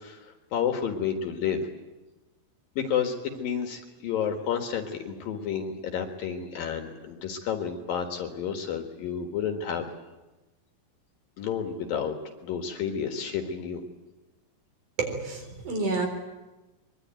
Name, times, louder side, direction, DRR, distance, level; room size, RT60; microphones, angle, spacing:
voice 1, 0.0-1.7 2.8-9.9 11.4-12.1 12.4-13.8, left 7 dB, 60° left, 5 dB, 3.1 m, -30 dB
voice 2, 15.0-16.1, right 3 dB, 50° right, 5 dB, 5.2 m, -29 dB
23.0 x 23.0 x 9.0 m, 1.1 s
omnidirectional pair, 4.9 m